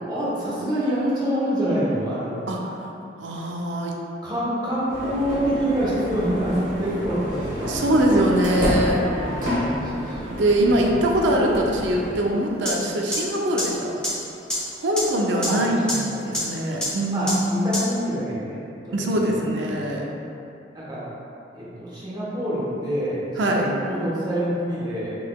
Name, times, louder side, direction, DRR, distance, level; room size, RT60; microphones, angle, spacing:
voice 1, 0.1-2.5 4.2-7.9 9.0-10.4 15.4-15.6 15.9-16.3 17.1-18.6 19.2-19.8 20.7-21.0 21.5-25.2, equal, 25° right, -8 dB, 1.0 m, -26 dB
voice 2, 3.2-4.0 7.7-9.1 10.3-14.0 14.8-15.8 16.2-17.3 18.9-20.0 23.4-23.6, right 1 dB, 80° right, 0 dB, 0.5 m, -22 dB
sound 1, 4.9-12.2, equal, 45° right, 1.2 m, -29 dB
sound 2, 12.7-12.8 13.1-13.2 13.6-13.7 14.0-14.1 14.5-14.6 15.0-15.1 15.4-15.5 15.9-16.0 16.3-16.4 16.8-16.9 17.3-17.4 17.7-17.8, left 1 dB, 5° left, 1.0 m, -24 dB
4.6 x 3.9 x 2.3 m, 2.7 s
head